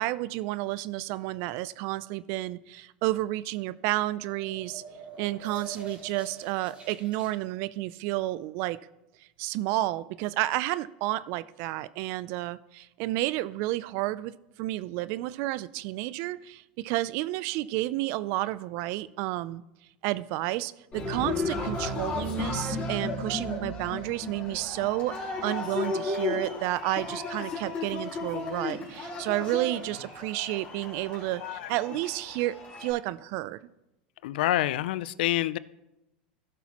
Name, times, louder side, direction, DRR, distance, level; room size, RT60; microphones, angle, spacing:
voice 1, 0.0-4.8 5.2-8.8 9.4-19.6 20.0-33.6, right 17 dB, 55° right, 18 dB, 0.4 m, -31 dB
sound 1, 4.2-7.3, right 4 dB, 25° right, 3.3 m, -45 dB
Cheering, 20.9-32.9, left 3 dB, 30° left, 3.3 m, -34 dB
voice 2, 34.2-35.6, left 15 dB, 75° left, 17 dB, 0.4 m, -27 dB
16.5 x 6.1 x 3.0 m, 0.93 s
supercardioid pair, 115°, 5 cm